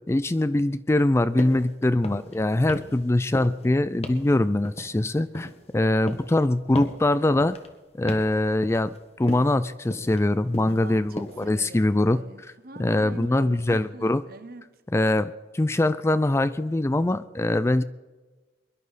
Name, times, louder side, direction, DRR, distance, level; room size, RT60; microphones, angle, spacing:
voice 1, 0.1-7.6 8.0-12.2 12.8-14.2 14.9-17.8, left 1 dB, 15° left, 0.3 m, -23 dB
sound 1, 1.4-1.7 2.0-2.4 2.7-3.1 3.3-3.7 4.0-4.3 4.6-5.7 6.1-6.4 6.7-7.0 7.4-7.7 8.1-8.4 8.6-9.0 9.3-9.6 9.9-10.2 10.5-10.9 11.2-11.5, left 1 dB, 35° left, 1.4 m, -36 dB
voice 2, 10.6-14.7, right 2 dB, 55° right, 1.0 m, -43 dB
23.0 x 11.5 x 4.1 m
head